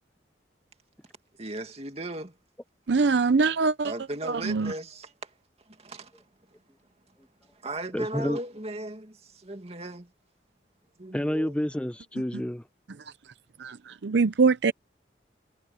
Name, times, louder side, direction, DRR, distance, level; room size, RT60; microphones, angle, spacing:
voice 1, 1.4-2.4 3.8-5.3 5.7-6.2 6.5-6.6 7.5-10.1 11.0-11.6, right 1 dB, 35° right, 2.3 m, -37 dB
voice 2, 2.9-3.9 4.2-4.7 13.6-14.7, right 4 dB, 70° right, 0.6 m, -23 dB
voice 3, 7.9-8.4 11.1-12.6, equal, 5° left, 0.6 m, -29 dB
head